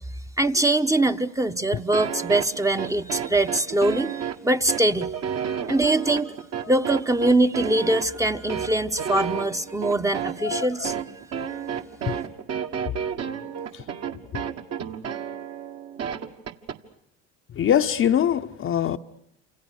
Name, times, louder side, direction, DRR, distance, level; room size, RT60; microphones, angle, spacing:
voice 1, 0.4-5.1 5.7-6.3 6.7-11.0, right 2 dB, 10° right, 1.0 m, -23 dB
sound 1, 1.9-16.8, right 8 dB, 45° right, 1.8 m, -31 dB
voice 2, 5.6-5.9 10.4-10.9 12.1-12.2 12.9-13.0 13.7-13.8 14.3-14.4 17.5-19.0, left 9 dB, 35° left, 0.9 m, -24 dB
28.5 x 27.0 x 6.5 m
hypercardioid pair, 80°, 34 cm